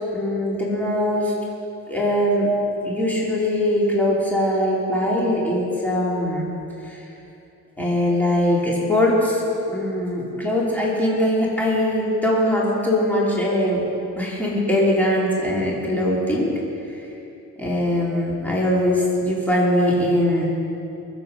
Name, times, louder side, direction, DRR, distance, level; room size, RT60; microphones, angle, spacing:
voice 1, 0.1-1.3 1.9-2.5 2.8-6.5 6.8-7.0 7.8-9.4 9.7-13.8 14.1-16.6 16.9-17.0 17.6-20.4, left 1 dB, 5° left, -5 dB, 3.4 m, -21 dB
21.5 x 8.0 x 5.4 m, 2.8 s
cardioid pair, 90°, 30 cm